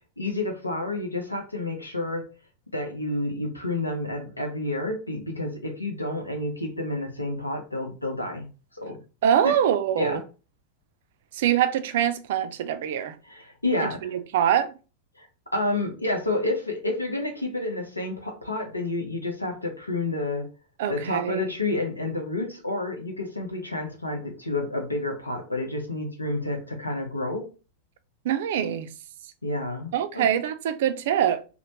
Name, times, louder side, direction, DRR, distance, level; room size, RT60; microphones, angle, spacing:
voice 1, 0.2-2.2 2.7-8.5 8.7-9.0 9.4-9.6 10.0-10.2 13.3-14.1 15.2-15.3 15.5-20.5 20.9-27.5 29.4-30.3, left 2 dB, 85° left, 0.6 m, -29 dB
voice 2, 9.2-10.2 11.3-13.2 14.0-14.7 20.8-21.4 28.2-28.9 29.9-31.4, right 10 dB, 55° right, 0.3 m, -24 dB
3.0 x 2.0 x 2.8 m
figure-of-eight pair, 90°, 0 cm